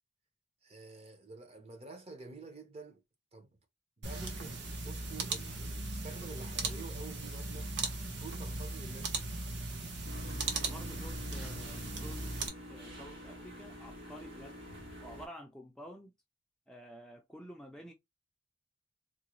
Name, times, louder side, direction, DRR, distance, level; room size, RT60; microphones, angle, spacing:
voice 1, 0.6-3.0 3.3-3.5 4.0-7.7 8.2-9.3, right 4 dB, 35° right, 0.8 m, -49 dB
sound 1, 4.0-12.5, right 3 dB, 70° right, 0.9 m, -38 dB
sound 2, 10.0-15.3, equal, 90° right, 1.4 m, -48 dB
voice 2, 10.2-14.6 15.0-16.1 16.7-17.9, equal, 5° left, 0.4 m, -50 dB
3.7 x 2.2 x 2.9 m
head